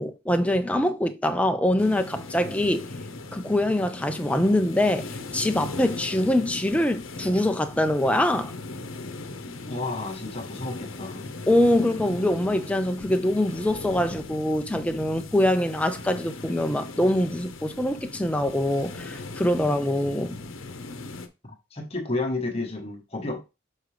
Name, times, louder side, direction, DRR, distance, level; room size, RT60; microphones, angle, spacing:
voice 1, 0.0-2.9 3.3-8.5 11.5-20.4, left 1 dB, 5° left, 0.4 m, -24 dB
sound 1, 1.8-21.3, left 3 dB, 80° left, 0.8 m, -39 dB
voice 2, 9.7-11.3 21.7-23.4, left 2 dB, 30° left, 1.1 m, -31 dB
6.5 x 4.7 x 3.3 m
head